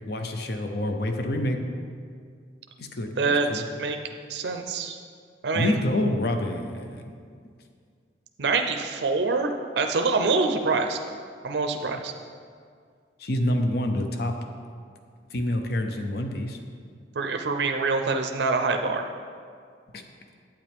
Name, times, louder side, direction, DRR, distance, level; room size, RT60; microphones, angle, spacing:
voice 1, 0.1-1.6 2.8-3.6 5.5-7.1 13.2-14.3 15.3-16.6 19.9-20.0, left 1 dB, 60° left, 5 dB, 0.7 m, -27 dB
voice 2, 3.2-4.0 4.3-5.0 5.4-5.8 8.4-11.0 11.4-12.1 17.2-19.1, right 3 dB, 65° right, 5 dB, 0.5 m, -25 dB
8.8 x 8.4 x 3.5 m, 2.1 s
head